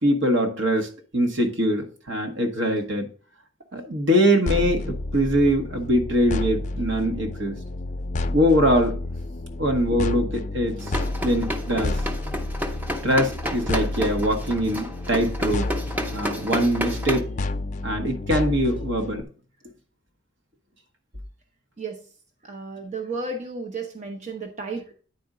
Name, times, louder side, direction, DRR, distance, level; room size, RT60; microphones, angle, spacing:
voice 1, 0.0-3.1 3.7-7.5 8.3-9.0 9.6-10.8 11.2-12.0 13.0-15.7 16.1-17.3 17.8-19.2, equal, 75° right, 4 dB, 1.3 m, -22 dB
sound 1, 4.5-19.2, left 2 dB, 40° left, 0.5 m, -30 dB
sound 2, 10.8-17.2, equal, 10° right, 0.7 m, -31 dB
voice 2, 22.4-24.9, right 3 dB, 40° right, 3 dB, 0.8 m, -33 dB
9.5 x 4.3 x 3.8 m, 0.41 s
head